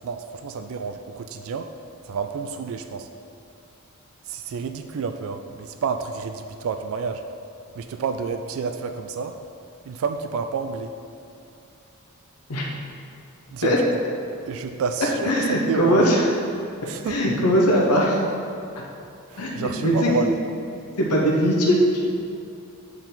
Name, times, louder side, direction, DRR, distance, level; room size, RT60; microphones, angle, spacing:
voice 1, 0.0-1.7 2.1-3.1 4.3-7.2 7.8-9.4 9.9-10.9 13.5-13.8 14.5-16.0 16.9-17.2 19.3-20.3, right 5 dB, 65° right, 7 dB, 0.3 m, -29 dB
voice 2, 15.2-16.2 17.1-18.2 19.4-20.1 21.0-22.0, equal, 85° left, -2 dB, 0.9 m, -20 dB
8.7 x 4.5 x 3.9 m, 2.7 s
head